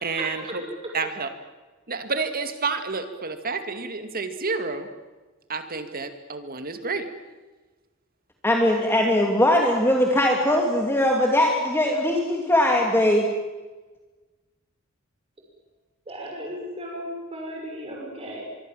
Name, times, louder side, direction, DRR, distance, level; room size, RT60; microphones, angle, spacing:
voice 1, 0.0-0.6 0.9-1.3 1.9-4.9 5.5-7.1, right 4 dB, 45° right, 8 dB, 2.3 m, -29 dB
voice 2, 8.4-13.3, left 1 dB, 10° left, 1 dB, 2.7 m, -20 dB
voice 3, 16.1-18.5, equal, 30° right, -1 dB, 6.1 m, -35 dB
24.5 x 23.5 x 7.5 m, 1.2 s
head